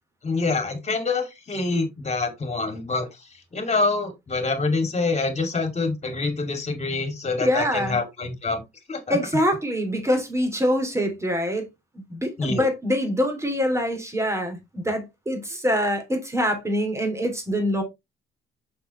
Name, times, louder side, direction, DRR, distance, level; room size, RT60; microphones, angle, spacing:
voice 1, 0.2-3.1 3.5-8.6 8.9-9.2 12.4-12.6, left 3 dB, 35° left, 2.6 m, -26 dB
voice 2, 7.4-8.0 9.1-11.7 12.1-17.8, equal, 15° right, 3.0 m, -24 dB
6.3 x 6.0 x 3.2 m
cardioid pair, 90°, 20 cm